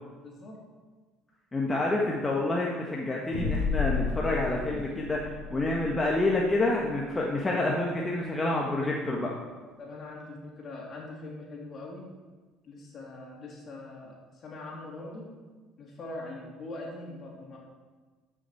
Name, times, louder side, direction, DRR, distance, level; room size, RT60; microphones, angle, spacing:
voice 1, 0.2-0.6 9.8-12.0 12.6-15.3 15.8-17.6, left 2 dB, 45° left, -2 dB, 3.0 m, -42 dB
voice 2, 1.5-9.3, left 2 dB, 20° left, -2 dB, 1.5 m, -28 dB
sound 1, 3.3-8.1, left 4 dB, 90° left, 2.8 m, -34 dB
12.5 x 6.5 x 4.6 m, 1.4 s
hypercardioid pair, 65°, 0 cm